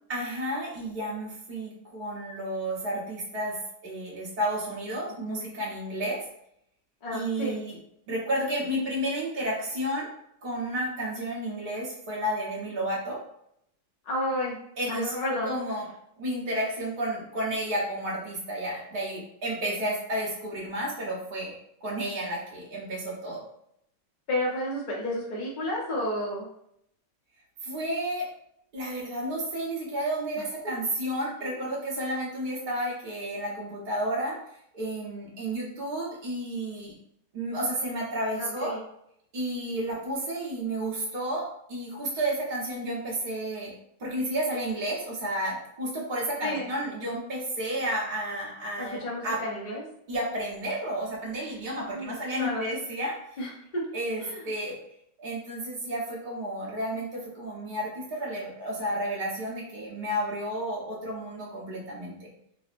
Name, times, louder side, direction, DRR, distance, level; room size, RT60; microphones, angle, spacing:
voice 1, 0.1-3.6 3.8-6.2 7.1-7.8 8.1-10.1 10.4-13.2 14.8-15.9 16.2-21.5 21.8-23.4 27.6-28.3 28.7-34.4 34.7-36.9 37.3-38.7 39.3-43.7 44.0-49.4 50.1-53.4 53.9-54.8 55.2-62.1, right 1 dB, 35° right, -5 dB, 0.8 m, -31 dB
voice 2, 7.0-7.6 14.1-14.6 14.9-15.5 24.3-26.5 31.4-31.6 38.3-38.8 46.4-46.7 48.8-49.8 51.9-52.7 53.4-53.8 54.2-54.4, left 1 dB, 45° left, -4 dB, 0.6 m, -32 dB
3.8 x 2.0 x 2.5 m, 0.73 s
omnidirectional pair, 1.9 m